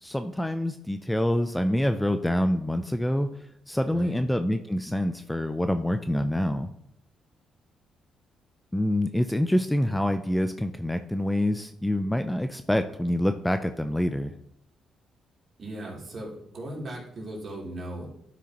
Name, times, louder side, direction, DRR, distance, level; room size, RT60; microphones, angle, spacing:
voice 1, 0.0-3.3 3.7-6.7 8.7-14.4, left 1 dB, 5° left, 8 dB, 0.4 m, -26 dB
voice 2, 3.9-4.2 15.6-18.1, right 1 dB, 45° right, -3 dB, 3.1 m, -37 dB
11.5 x 6.0 x 3.0 m, 0.77 s
cardioid pair, 90°, 0 cm